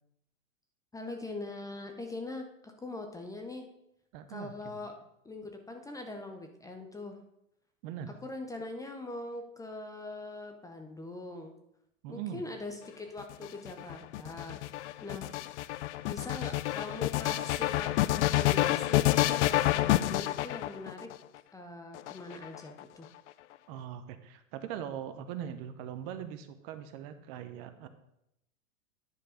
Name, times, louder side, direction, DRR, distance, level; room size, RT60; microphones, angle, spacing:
voice 1, 0.9-3.7 4.3-4.9 5.2-7.2 8.2-11.5 12.1-14.6 15.0-15.3 16.1-21.1 21.5-23.1, left 2 dB, 10° left, 4 dB, 0.6 m, -42 dB
voice 2, 4.1-4.8 7.8-8.1 12.0-12.4 23.7-27.9, right 9 dB, 45° right, 10 dB, 0.9 m, -41 dB
sound 1, 13.2-21.1 21.9-22.8, left 16 dB, 60° left, 0.5 m, -28 dB
10.0 x 4.5 x 5.1 m, 0.81 s
hypercardioid pair, 115°, 41 cm